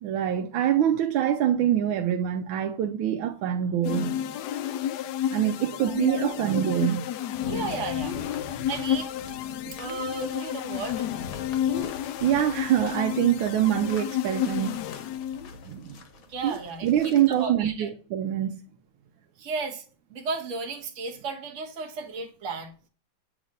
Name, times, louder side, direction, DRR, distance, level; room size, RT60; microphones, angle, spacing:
voice 1, 0.0-4.2 5.3-7.1 9.7-9.8 12.2-14.8 15.6-16.0 16.4-18.6, right 10 dB, 90° right, 1.4 m, -25 dB
sound 1, 3.8-15.6, left 10 dB, 75° left, 1.0 m, -31 dB
sound 2, 7.3-17.5, left 3 dB, 55° left, 1.2 m, -45 dB
voice 2, 7.5-8.2 8.7-9.1 9.7-11.1 16.3-17.9 19.4-19.8 20.1-22.7, right 4 dB, 45° right, 1.4 m, -34 dB
8.4 x 3.1 x 5.2 m
omnidirectional pair, 2.1 m